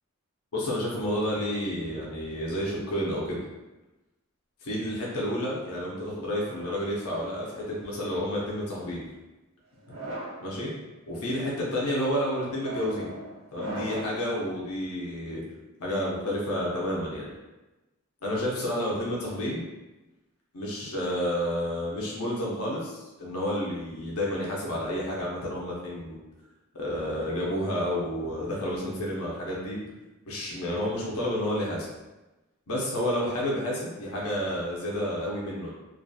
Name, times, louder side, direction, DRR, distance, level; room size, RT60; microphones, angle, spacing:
voice 1, 0.5-3.5 4.6-9.0 10.4-10.7 11.1-13.1 13.5-15.4 15.8-17.3 18.2-19.6 20.5-26.2 26.7-29.8 30.3-31.9 32.7-35.7, equal, 80° left, -4 dB, 0.6 m, -30 dB
sound 1, 6.3-7.8 8.5-8.9 9.7-10.4 11.1-11.4 12.4-14.2, right 1 dB, 75° right, 0.9 m, -39 dB
2.7 x 2.5 x 2.2 m, 1.1 s
head